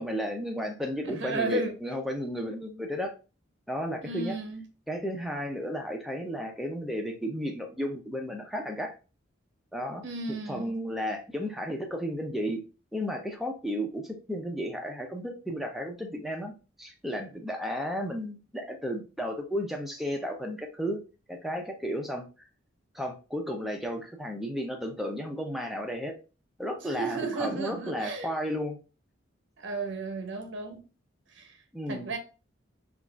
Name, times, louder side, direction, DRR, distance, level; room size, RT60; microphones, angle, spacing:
voice 1, 0.0-3.1 3.7-4.3 4.9-8.9 9.7-10.0 10.5-12.6 12.9-16.5 16.8-21.0 21.3-22.2 22.9-26.1 26.6-28.8 31.7-32.1, equal, ahead, 0.4 m, -33 dB
voice 2, 1.0-1.8 4.0-4.6 10.0-10.8 26.8-28.3 29.6-30.8 31.3-31.6 31.9-32.2, right 3 dB, 65° right, 0.7 m, -34 dB
3.8 x 2.4 x 2.3 m
head